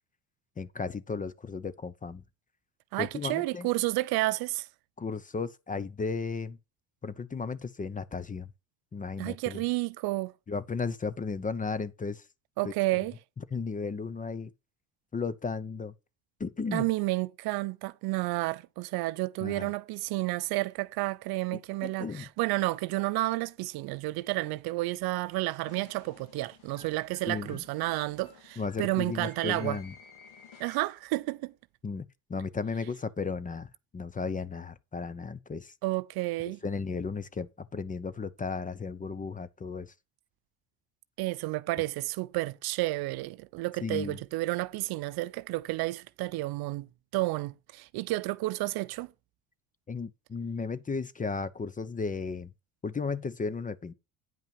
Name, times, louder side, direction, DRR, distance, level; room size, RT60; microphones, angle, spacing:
voice 1, 0.6-2.2 3.0-3.7 5.0-6.6 7.0-8.5 8.9-9.6 10.5-12.2 12.6-12.7 13.4-14.5 15.1-15.9 16.4-16.9 19.4-19.7 21.5-22.2 27.3-27.6 28.6-29.9 31.8-35.7 36.6-39.9 43.8-44.2 49.9-52.5 52.8-53.9, left 4 dB, 20° left, 0.7 m, -35 dB
voice 2, 2.9-4.7 9.2-10.3 12.6-13.1 16.7-29.8 30.6-31.5 35.8-36.6 41.2-49.1, right 20 dB, 65° right, 0.7 m, -31 dB
sound 1, 25.7-31.1, left 6 dB, 65° left, 2.7 m, -54 dB
9.3 x 5.4 x 5.3 m
supercardioid pair, 75°, 40 cm